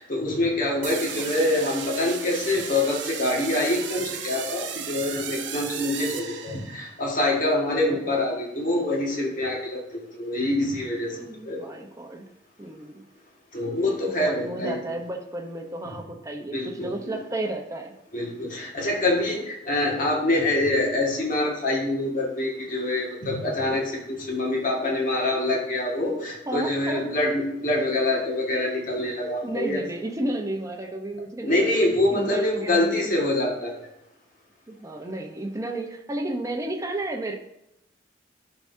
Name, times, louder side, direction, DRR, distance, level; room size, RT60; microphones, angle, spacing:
voice 1, 0.0-11.2 11.5-11.6 13.5-14.8 16.5-17.2 18.1-29.8 31.4-33.7, left 1 dB, 45° left, -1 dB, 1.8 m, -25 dB
sound 1, 0.8-7.0, right 8 dB, 85° right, 0.7 m, -35 dB
voice 2, 7.9-8.3 11.2-12.3 12.6-13.0 14.1-17.9 20.0-20.1 26.1-27.1 29.4-31.6 32.1-33.2 34.7-37.3, right 2 dB, 20° right, 2 dB, 0.8 m, -32 dB
12.0 x 4.9 x 2.7 m, 0.84 s
head